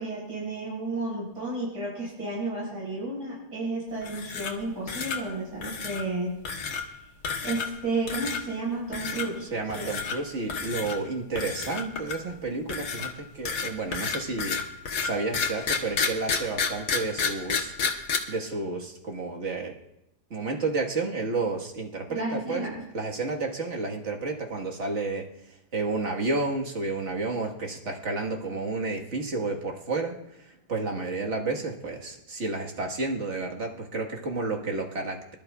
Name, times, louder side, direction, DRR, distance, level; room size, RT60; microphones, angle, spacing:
voice 1, 0.0-6.3 7.4-9.9 22.1-22.8, right 2 dB, 85° right, -7 dB, 6.5 m, -32 dB
sound 1, 4.0-4.6 4.9-5.2 5.6-6.0 6.5-6.8 7.2-7.8 8.1-8.4 8.9-9.3 9.7-10.2 10.5-11.0 11.4-12.3 12.7-18.2, left 5 dB, 70° left, 1.7 m, -30 dB
voice 2, 9.4-14.6 15.0-17.7 18.3-19.7 20.3-22.7 22.9-35.3, right 3 dB, 45° right, 0 dB, 1.8 m, -31 dB
24.0 x 12.0 x 2.3 m, 0.86 s
omnidirectional pair, 1.8 m